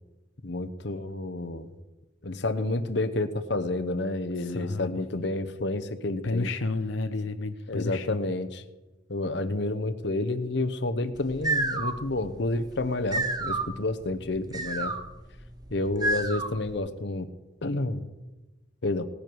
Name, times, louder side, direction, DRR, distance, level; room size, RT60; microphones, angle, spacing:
voice 1, 0.4-1.7 2.2-6.5 7.7-8.6 9.1-14.9 15.7-17.3 17.6-18.0 18.8-19.1, left 2 dB, 65° left, 11 dB, 0.9 m, -30 dB
voice 2, 4.4-4.9 6.2-8.3, left 3 dB, 90° left, 8 dB, 0.6 m, -31 dB
sound 1, 11.2-16.8, right 2 dB, 20° right, 1.0 m, -31 dB
18.5 x 10.5 x 4.7 m, 1.1 s
head